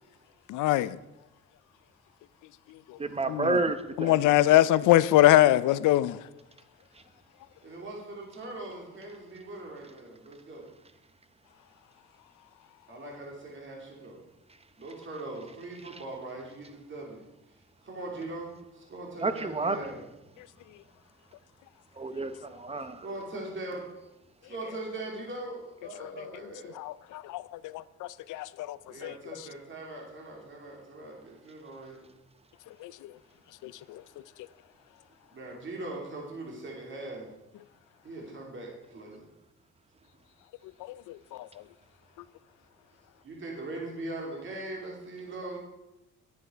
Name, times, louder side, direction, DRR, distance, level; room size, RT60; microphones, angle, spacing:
voice 1, 0.5-1.0 2.9-3.0 3.3-3.6 4.0-6.2 26.0-26.1 26.8-29.1 32.8-33.1 33.6-34.0 40.8-41.5, left 14 dB, 85° left, 0.5 m, -24 dB
voice 2, 3.0-4.1 19.2-19.8 22.0-22.3 22.6-22.9, right 3 dB, 20° right, 0.8 m, -29 dB
voice 3, 7.6-10.7 12.9-14.2 14.8-17.3 17.8-20.1 23.0-23.9 24.4-26.7 28.9-32.1 35.3-37.3 38.0-39.2 43.2-45.6, right 2 dB, 40° right, 2.9 m, -40 dB
10.5 x 9.6 x 4.5 m
cardioid pair, 90°, 30 cm